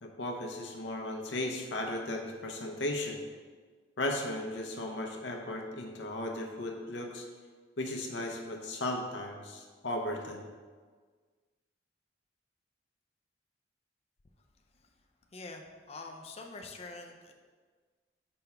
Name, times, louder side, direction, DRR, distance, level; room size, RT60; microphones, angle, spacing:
voice 1, 0.0-3.2 4.0-7.2 7.8-10.5, left 1 dB, 80° left, 2 dB, 0.8 m, -36 dB
voice 2, 15.3-17.3, left 3 dB, 35° left, 3 dB, 0.5 m, -45 dB
5.3 x 3.4 x 5.7 m, 1.5 s
head